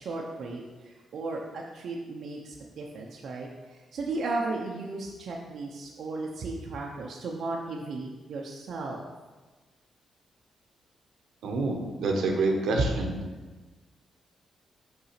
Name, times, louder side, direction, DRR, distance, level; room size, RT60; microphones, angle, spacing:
voice 1, 0.0-9.1, right 3 dB, 65° right, -2 dB, 0.7 m, -35 dB
voice 2, 11.4-13.1, right 2 dB, 85° right, 2 dB, 1.0 m, -26 dB
5.8 x 3.7 x 5.8 m, 1.3 s
cardioid pair, 110°, 0 cm